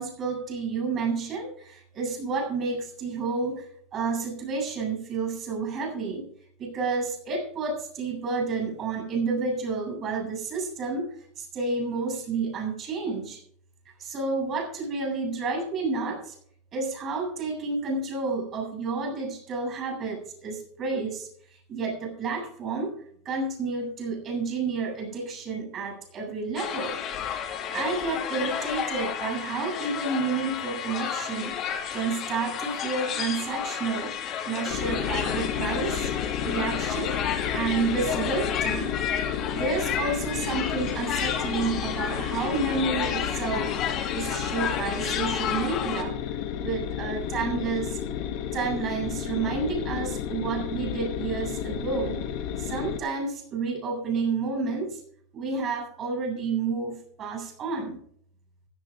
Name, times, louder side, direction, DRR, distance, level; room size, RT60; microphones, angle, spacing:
voice 1, 0.0-6.3 6.6-13.4 14.0-16.4 16.7-22.9 23.3-27.0 27.5-31.6 31.9-34.1 34.4-36.1 36.4-37.1 37.5-38.9 39.5-43.7 44.1-48.0 48.5-52.2 52.6-55.0 55.3-58.0, right 4 dB, 30° right, 2 dB, 7.3 m, -30 dB
sound 1, 26.6-46.0, left 8 dB, 35° left, 2.6 m, -32 dB
sound 2, 34.7-53.0, left 9 dB, 55° left, 1.9 m, -32 dB
15.5 x 11.5 x 3.7 m, 0.62 s
supercardioid pair, 150°, 0 cm